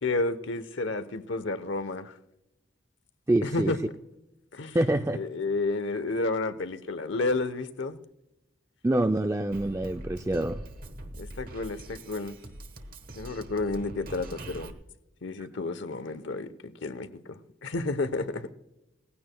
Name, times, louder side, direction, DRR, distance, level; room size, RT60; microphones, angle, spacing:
voice 1, 0.0-2.1 3.4-3.8 4.5-4.8 5.1-8.0 11.2-12.4 13.1-14.7 15.2-18.5, left 3 dB, 75° left, 0.9 m, -31 dB
voice 2, 3.3-3.7 4.7-5.2 8.8-10.6, right 1 dB, 15° right, 0.3 m, -26 dB
Drum kit, 9.5-14.7, right 1 dB, 45° right, 1.1 m, -43 dB
19.0 x 15.5 x 2.3 m
head